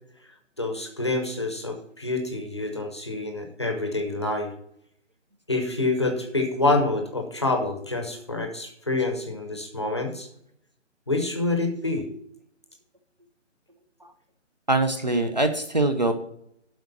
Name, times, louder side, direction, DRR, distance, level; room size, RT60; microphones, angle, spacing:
voice 1, 0.6-4.5 5.5-10.3 11.1-12.1, left 2 dB, 20° left, 4 dB, 0.8 m, -27 dB
voice 2, 14.7-16.1, right 2 dB, 35° right, 7 dB, 0.6 m, -23 dB
8.0 x 4.9 x 7.1 m, 0.70 s
hypercardioid pair, 175°, 37 cm